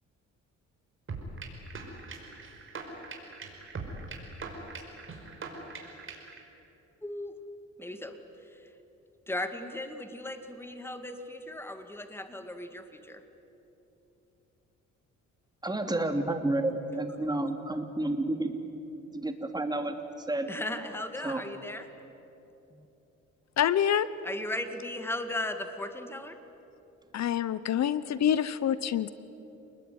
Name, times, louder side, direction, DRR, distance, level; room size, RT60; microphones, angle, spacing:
sound 1, 1.1-6.4, right 3 dB, 45° right, 5.1 m, -41 dB
voice 1, 7.0-7.3 7.8-8.2 9.3-13.2 20.5-21.9 22.7-22.9 24.2-26.4, left 1 dB, 10° left, 7 dB, 2.2 m, -37 dB
voice 2, 15.6-18.6 19.1-19.9 20.3-20.5 21.2-21.4, right 2 dB, 15° right, 5 dB, 3.0 m, -30 dB
voice 3, 23.6-24.1 27.1-29.1, left 9 dB, 60° left, 16 dB, 0.9 m, -26 dB
28.5 x 20.5 x 9.6 m, 3.0 s
cardioid pair, 90°, 30 cm